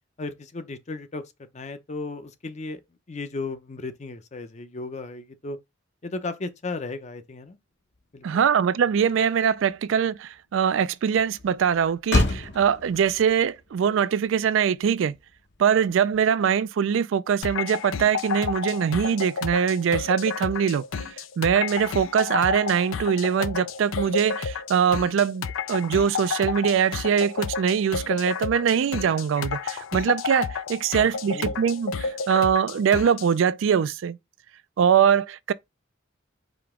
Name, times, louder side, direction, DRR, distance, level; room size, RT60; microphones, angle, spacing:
voice 1, 0.2-1.2 1.5-2.8 3.1-5.6 6.0-7.6 8.1-8.3 31.0-31.6, left 3 dB, 35° left, 0.6 m, -35 dB
Motor vehicle (road), 7.9-16.6, left 2 dB, 60° left, 0.9 m, -33 dB
voice 2, 8.2-15.2 15.6-20.8 21.4-34.2 34.8-35.5, right 7 dB, 75° right, 0.3 m, -22 dB
sound 1, 17.4-33.3, left 5 dB, 85° left, 0.5 m, -31 dB
5.0 x 2.9 x 3.6 m
head